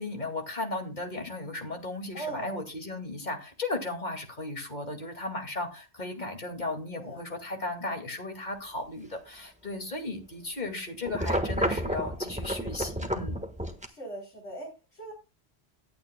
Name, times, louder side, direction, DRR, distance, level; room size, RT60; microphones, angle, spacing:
voice 1, 0.0-13.4, left 2 dB, 40° left, 4 dB, 2.3 m, -35 dB
voice 2, 2.1-2.6 7.0-7.2 13.8-15.1, right 2 dB, 90° left, -2 dB, 3.8 m, -40 dB
sound 1, 11.1-13.9, equal, 5° right, 1.2 m, -30 dB
18.0 x 9.4 x 2.2 m, 0.29 s
omnidirectional pair, 1.1 m